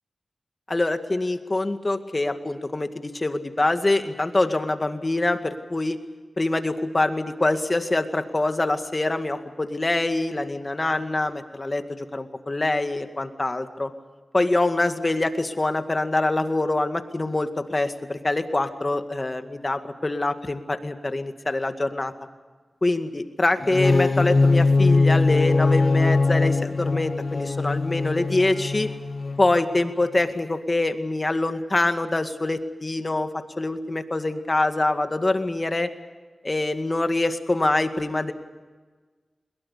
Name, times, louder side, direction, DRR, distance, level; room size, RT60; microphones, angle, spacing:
voice 1, 0.7-6.0 6.4-13.9 14.3-22.1 22.8-28.9 29.4-35.9 36.4-38.3, left 2 dB, 35° left, 7 dB, 2.1 m, -25 dB
sound 1, 23.6-29.6, left 3 dB, 55° left, 1.2 m, -21 dB
22.5 x 21.5 x 8.4 m, 1.4 s
cardioid pair, 50°, 0 cm